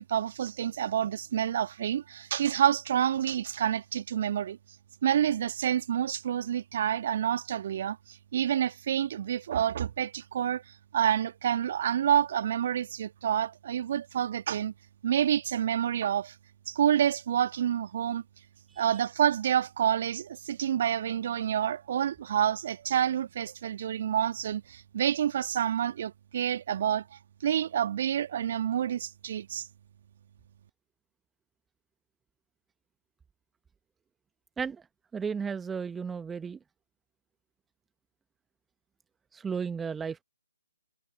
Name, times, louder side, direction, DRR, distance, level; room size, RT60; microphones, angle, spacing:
voice 1, 0.0-4.6 5.0-10.6 10.9-14.7 15.0-16.3 16.7-18.2 18.8-27.0 27.4-29.7, right 10 dB, 40° right, 1.7 m, -28 dB
voice 2, 35.1-36.6 39.3-40.2, right 6 dB, 5° right, 1.2 m, -34 dB
figure-of-eight pair, 140°, 0 cm